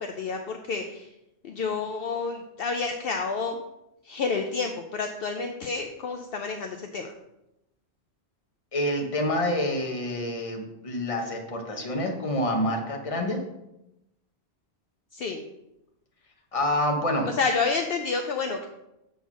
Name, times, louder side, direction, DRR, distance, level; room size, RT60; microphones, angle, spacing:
voice 1, 0.1-1.1 1.4-3.6 4.0-7.1 15.1-15.4 17.3-18.7, left 4 dB, 65° left, 4 dB, 0.8 m, -29 dB
voice 2, 8.7-13.4 16.5-17.3, left 1 dB, 30° left, 2 dB, 1.1 m, -27 dB
7.0 x 3.9 x 6.1 m, 0.90 s
omnidirectional pair, 1.1 m